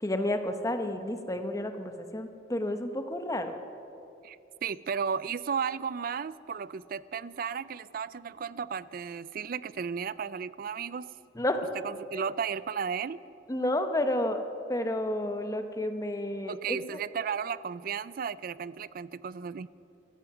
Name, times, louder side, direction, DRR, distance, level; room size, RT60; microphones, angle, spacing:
voice 1, 0.0-3.6 11.4-11.6 13.5-14.4 14.7-17.0, left 1 dB, 20° left, 7 dB, 0.9 m, -31 dB
voice 2, 4.2-11.1 11.8-13.2 16.5-19.7, right 6 dB, 50° right, 18 dB, 0.4 m, -34 dB
14.5 x 14.0 x 6.0 m, 2.7 s
head